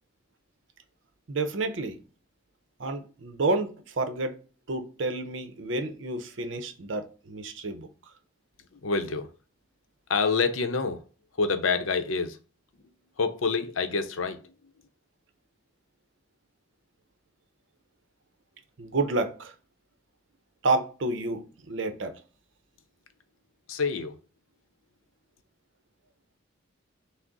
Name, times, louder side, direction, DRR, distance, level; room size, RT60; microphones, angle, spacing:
voice 1, 1.3-2.0 2.8-4.3 4.7-7.9 18.8-19.5 20.6-22.2, right 2 dB, 70° right, 0.6 m, -29 dB
voice 2, 8.7-9.3 10.1-11.0 11.4-12.4 13.2-14.5 23.7-24.2, left 4 dB, 90° left, 0.7 m, -27 dB
6.0 x 2.0 x 3.9 m
head